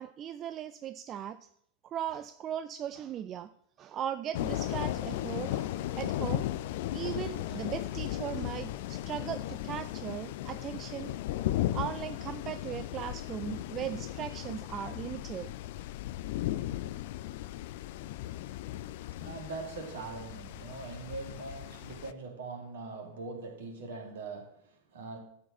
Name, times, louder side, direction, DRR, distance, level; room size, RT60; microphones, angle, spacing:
voice 1, 0.0-1.5 1.8-3.5 3.8-6.4 6.9-11.1 11.7-15.5, right 10 dB, 30° right, 14 dB, 0.3 m, -38 dB
sound 1, 4.3-22.1, left 14 dB, 50° left, 0.4 m, -36 dB
voice 2, 19.2-25.2, right 3 dB, 60° right, 2 dB, 2.3 m, -42 dB
12.0 x 4.7 x 5.9 m, 0.71 s
figure-of-eight pair, 90°, 0 cm